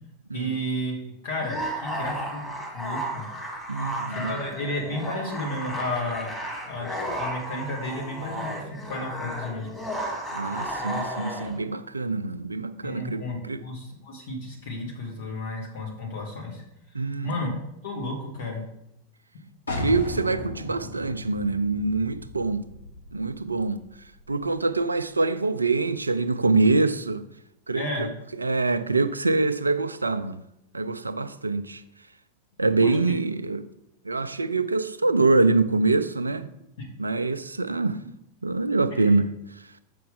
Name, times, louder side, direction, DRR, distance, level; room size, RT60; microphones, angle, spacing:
voice 1, 0.3-2.4 2.7-3.2 4.1-6.3 6.7-9.8 12.8-16.6 17.2-17.5 17.8-18.6 27.8-28.1 32.8-33.0 36.8-36.9 38.9-39.2, left 1 dB, 55° left, 2.2 m, -32 dB
sound 1, 1.4-11.6, right 1 dB, 5° left, 2.1 m, -33 dB
voice 2, 3.7-4.3 10.3-13.6 16.9-17.5 19.8-22.7 23.1-23.8 24.3-27.2 27.7-28.1 28.4-30.4 30.7-31.8 32.6-33.7 34.0-36.5 37.0-38.0 38.4-39.3, right 3 dB, 80° right, 0.4 m, -25 dB
sound 2, 19.7-25.2, left 2 dB, 80° left, 1.1 m, -37 dB
7.5 x 5.5 x 3.7 m
figure-of-eight pair, 90°, 0 cm